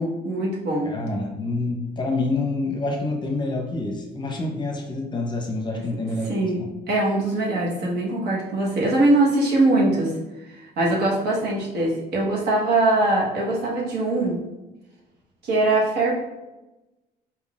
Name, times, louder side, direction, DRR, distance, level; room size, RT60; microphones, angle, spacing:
voice 1, 0.0-0.9 6.3-6.6 6.9-10.2 10.5-14.4 15.4-16.1, right 2 dB, 75° right, -3 dB, 1.3 m, -22 dB
voice 2, 0.8-6.8, left 2 dB, 25° left, 1 dB, 0.8 m, -27 dB
4.4 x 3.6 x 2.4 m, 1.0 s
cardioid pair, 110°, 17 cm